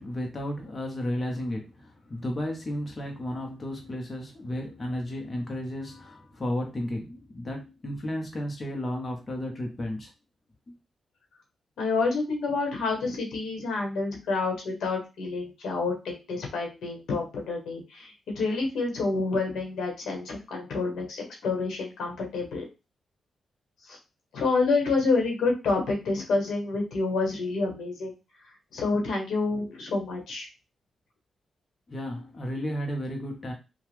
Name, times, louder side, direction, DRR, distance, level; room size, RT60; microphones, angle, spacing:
voice 1, 0.0-10.1 10.7-10.8 31.9-33.5, left 1 dB, 35° left, 1 dB, 0.9 m, -33 dB
voice 2, 11.8-22.6 23.8-24.0 24.3-28.1 28.4-30.5, left 3 dB, 80° left, 1 dB, 1.1 m, -28 dB
2.9 x 2.3 x 3.3 m, 0.28 s
cardioid pair, 65°, 0 cm